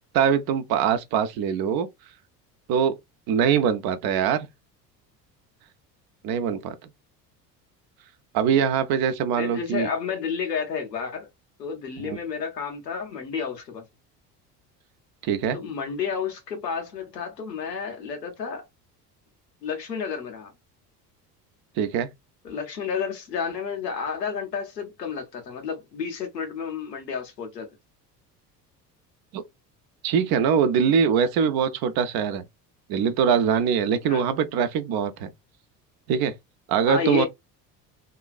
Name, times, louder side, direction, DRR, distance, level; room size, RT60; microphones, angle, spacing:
voice 1, 0.1-1.9 2.7-3.0 3.3-4.5 6.2-6.7 8.3-9.9 12.0-12.2 15.2-15.6 21.8-22.1 29.3-29.4 30.0-32.4 32.9-35.3 36.1-36.3 36.7-37.3, right 7 dB, 50° right, 0.7 m, -23 dB
voice 2, 9.4-11.3 11.6-13.8 15.5-18.6 19.6-20.5 22.4-27.7 34.0-34.3 36.9-37.3, left 6 dB, 90° left, 0.9 m, -31 dB
2.9 x 2.3 x 2.3 m
hypercardioid pair, 65°, 48 cm